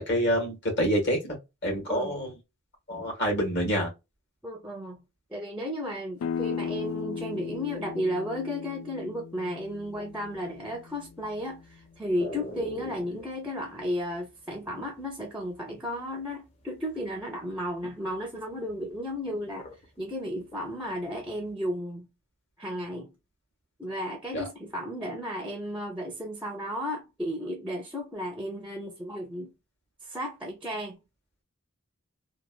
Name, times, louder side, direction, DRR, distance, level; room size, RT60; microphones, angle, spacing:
voice 1, 0.0-1.4 1.6-2.3 2.9-3.9 24.3-24.5, equal, 55° left, 1.5 m, -27 dB
voice 2, 4.4-5.0 5.3-19.7 20.0-22.1 22.6-23.1 23.8-29.5 30.0-31.0, equal, 5° right, 0.5 m, -34 dB
sound 1, 6.2-11.8, left 6 dB, 85° left, 0.3 m, -37 dB
sound 2, 9.7-16.2 16.5-20.0 20.3-21.5, left 1 dB, 30° left, 0.7 m, -43 dB
3.2 x 2.2 x 2.2 m
head